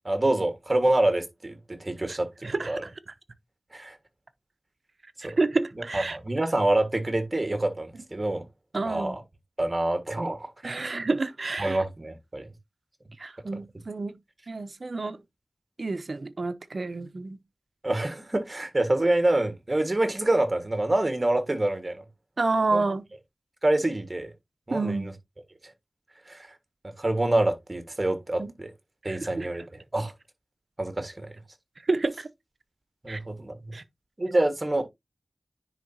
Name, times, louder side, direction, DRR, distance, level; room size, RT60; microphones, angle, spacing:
voice 1, 0.1-2.3 2.7-2.8 3.7-4.0 5.2-5.3 5.9-8.4 8.8-9.2 9.6-10.8 11.6-12.5 17.8-22.0 22.7-22.8 23.6-24.3 24.7-25.1 25.6-25.7 26.3-26.5 27.0-28.7 29.0-29.6 29.9-30.1 30.8-31.3 33.0-33.7 34.2-34.8, right 1 dB, 35° right, 1.6 m, -26 dB
voice 2, 2.4-2.9 5.4-6.2 8.7-9.2 10.6-11.8 13.2-14.2 14.5-15.2 15.8-17.4 22.4-23.0 24.7-25.1 28.4-28.5 29.0-29.5 31.9-32.3 33.1-33.2 33.7-33.8, right 3 dB, 65° right, 0.8 m, -29 dB
9.9 x 3.9 x 2.8 m
wide cardioid pair, 80°, 0 cm